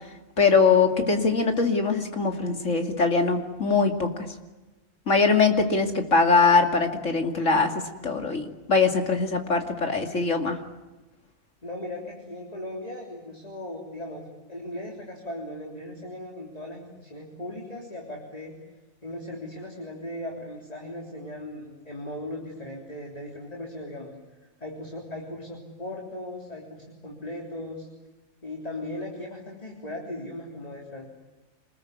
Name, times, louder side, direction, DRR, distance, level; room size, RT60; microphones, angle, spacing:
voice 1, 0.4-4.1 5.1-7.7 8.0-10.6, left 4 dB, 60° left, 5 dB, 2.9 m, -22 dB
voice 2, 11.6-18.6 19.0-24.2 24.6-27.9 28.4-31.1, left 1 dB, 25° left, 0 dB, 3.7 m, -38 dB
27.5 x 21.0 x 9.6 m, 1.1 s
omnidirectional pair, 1.4 m